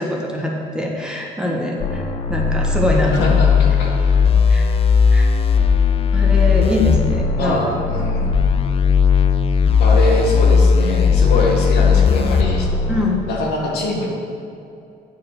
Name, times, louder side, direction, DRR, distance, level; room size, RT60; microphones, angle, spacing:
voice 1, 0.0-3.4 4.5-4.6 5.1-5.3 6.1-7.6 12.9-13.2, left 1 dB, 5° right, -2 dB, 1.3 m, -23 dB
sound 1, 1.8-13.2, left 6 dB, 35° left, 0.4 m, -16 dB
voice 2, 3.1-4.2 7.4-8.3 9.8-12.7 13.3-14.1, left 2 dB, 75° left, -1 dB, 1.8 m, -23 dB
8.7 x 5.0 x 6.4 m, 2.6 s
cardioid pair, 110°, 17 cm